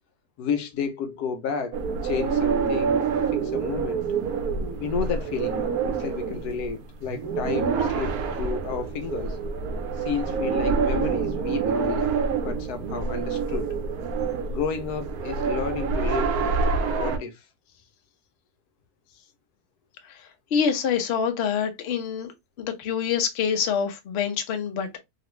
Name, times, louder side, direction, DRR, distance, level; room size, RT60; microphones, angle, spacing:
voice 1, 0.4-3.0 3.3-4.0 4.8-9.4 10.0-12.1 12.4-13.7 14.5-16.5 17.0-17.5, left 6 dB, 80° left, 1.2 m, -31 dB
sound 1, 1.7-17.2, right 5 dB, 80° right, 1.2 m, -27 dB
voice 2, 20.5-22.3 22.6-25.0, left 7 dB, 55° left, 0.8 m, -26 dB
3.0 x 2.5 x 3.0 m
omnidirectional pair, 1.6 m